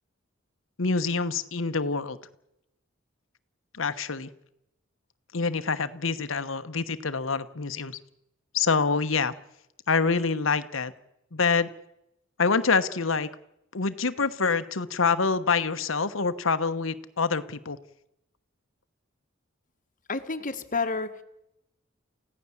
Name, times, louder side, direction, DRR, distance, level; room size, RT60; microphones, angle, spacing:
voice 1, 0.8-2.2 3.8-4.3 5.3-8.0 8.5-9.3 9.9-10.9 11.3-11.7 12.4-13.3 13.7-17.8, left 4 dB, 75° left, 11 dB, 1.1 m, -26 dB
voice 2, 20.1-21.2, left 4 dB, 40° left, 9 dB, 1.5 m, -30 dB
29.0 x 16.0 x 7.2 m, 0.84 s
head